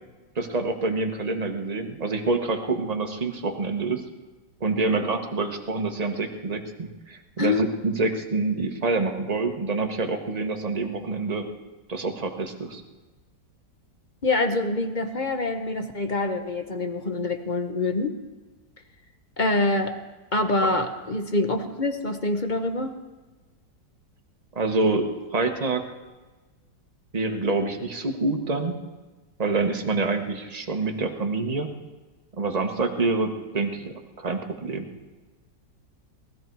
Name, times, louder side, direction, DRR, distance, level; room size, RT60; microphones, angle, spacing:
voice 1, 0.3-4.0 4.6-11.5 11.9-12.8 20.6-20.7 24.5-25.8 27.1-28.8 29.4-31.7 32.4-34.9, right 3 dB, 25° right, 4 dB, 1.2 m, -26 dB
voice 2, 14.2-18.2 19.4-20.0 20.3-22.9, left 2 dB, 35° left, 7 dB, 0.8 m, -25 dB
19.0 x 13.5 x 4.7 m, 1.2 s
omnidirectional pair, 1.9 m